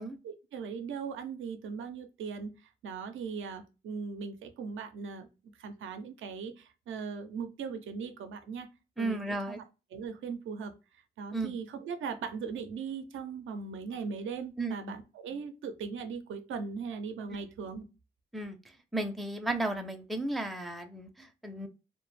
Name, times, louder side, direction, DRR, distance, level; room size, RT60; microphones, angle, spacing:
voice 1, 0.2-5.3 5.6-8.7 9.0-9.6 9.9-10.7 11.2-17.8, right 5 dB, 85° right, 8 dB, 0.4 m, -39 dB
voice 2, 9.0-9.6 11.3-11.5 14.6-14.7 18.3-18.6 18.9-21.7, right 2 dB, ahead, 5 dB, 0.4 m, -34 dB
2.1 x 2.0 x 3.1 m, 0.29 s
cardioid pair, 60°, 20 cm